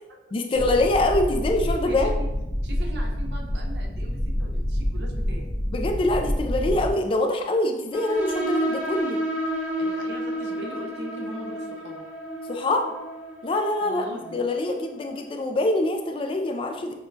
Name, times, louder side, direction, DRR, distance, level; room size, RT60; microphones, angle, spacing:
voice 1, 0.3-2.1 5.7-9.2 12.5-12.9 13.4-16.9, left 2 dB, 30° left, 4 dB, 0.3 m, -24 dB
sound 1, 0.5-6.9, equal, 70° left, 0.9 m, -27 dB
voice 2, 1.8-2.3 2.6-5.6 9.8-12.1 13.8-14.4, right 1 dB, 65° right, 1 dB, 0.7 m, -40 dB
sound 2, 7.9-15.2, right 1 dB, 10° right, 0.6 m, -31 dB
6.0 x 2.2 x 2.6 m, 0.96 s
head